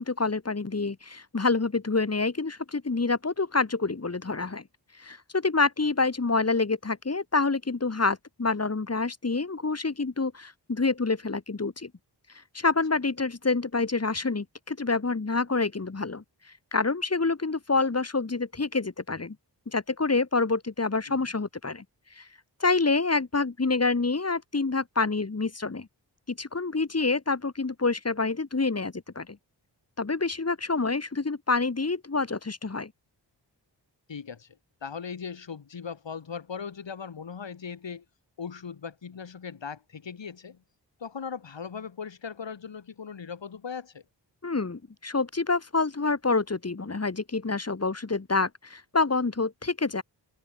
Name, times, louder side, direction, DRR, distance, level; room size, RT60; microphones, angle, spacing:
voice 1, 0.0-4.6 5.0-11.9 12.5-16.2 16.7-19.4 19.7-21.8 22.2-22.3 22.6-25.9 26.3-29.4 30.0-32.9 44.4-50.0, left 3 dB, 35° left, 4.2 m, -27 dB
voice 2, 34.1-34.5 34.8-38.0 38.4-40.6 41.0-44.0, left 6 dB, 85° left, 7.4 m, -39 dB
wide cardioid pair, 130°, 43 cm